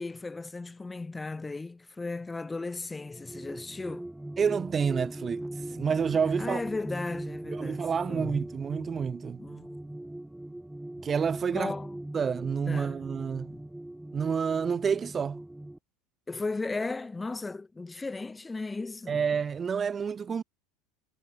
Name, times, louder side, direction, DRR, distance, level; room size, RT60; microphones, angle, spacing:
voice 1, 0.0-4.1 6.4-8.4 9.4-9.8 11.5-12.0 12.7-13.0 13.5-13.6 16.3-19.2, left 3 dB, 15° left, 1.2 m, -36 dB
sound 1, 3.0-15.8, right 1 dB, 5° right, 0.8 m, -40 dB
voice 2, 4.4-5.4 5.7-6.6 7.5-9.4 11.0-11.7 12.1-13.5 14.1-15.4 19.1-20.4, right 6 dB, 25° right, 1.6 m, -29 dB
figure-of-eight pair, 75°, 0 cm